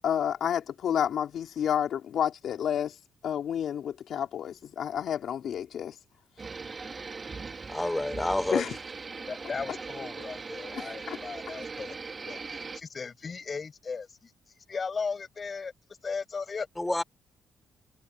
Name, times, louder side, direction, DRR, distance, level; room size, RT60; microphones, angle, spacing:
voice 1, 0.0-3.0 3.2-6.0 8.5-8.7 10.7-11.2, left 9 dB, 65° left, 3.1 m, -30 dB
sound 1, 6.4-12.8, right 4 dB, 35° right, 4.0 m, -40 dB
voice 2, 7.7-8.6 16.8-17.0, left 1 dB, 10° left, 4.7 m, -28 dB
voice 3, 9.3-12.0 12.3-14.3 14.7-15.7 16.0-16.7, left 5 dB, 35° left, 7.2 m, -36 dB
cardioid pair, 90°, 0 cm